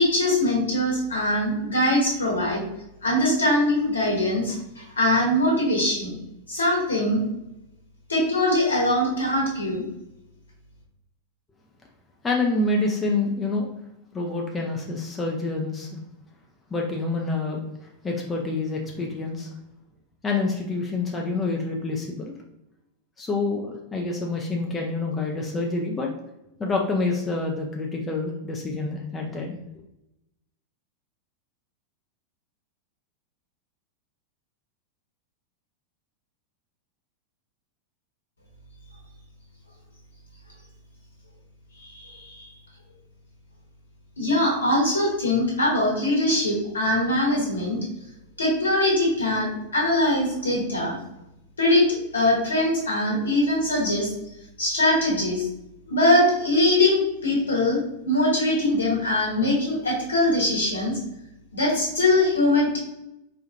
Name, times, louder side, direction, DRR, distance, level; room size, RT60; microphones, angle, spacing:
voice 1, 0.0-2.6 3.0-6.1 6.5-7.2 8.1-9.8 41.8-42.4 44.2-47.8 48.4-51.0 51.6-51.8 52.1-54.1 54.6-55.5 55.9-61.0 61.5-62.8, left 1 dB, 75° left, -3 dB, 1.2 m, -22 dB
voice 2, 12.2-13.7 14.1-16.0 16.7-17.6 18.0-19.5 20.2-22.3 23.2-26.1 26.6-29.6, left 3 dB, 15° left, -1 dB, 0.5 m, -27 dB
4.4 x 2.4 x 2.6 m, 0.86 s
figure-of-eight pair, 90°, 0 cm